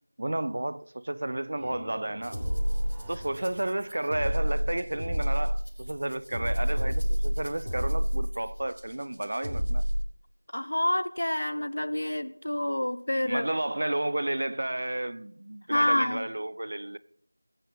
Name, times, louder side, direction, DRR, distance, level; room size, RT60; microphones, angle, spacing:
voice 1, 0.2-2.4 3.1-9.8 13.3-17.0, right 1 dB, 35° right, 0.4 m, -32 dB
sound 1, 1.3-4.8, equal, ahead, 1.1 m, -48 dB
sound 2, 2.2-10.0, equal, 85° left, 6.3 m, -29 dB
voice 2, 10.5-13.5 15.7-16.3, left 1 dB, 45° left, 0.7 m, -27 dB
21.5 x 8.1 x 4.1 m
figure-of-eight pair, 175°, 0 cm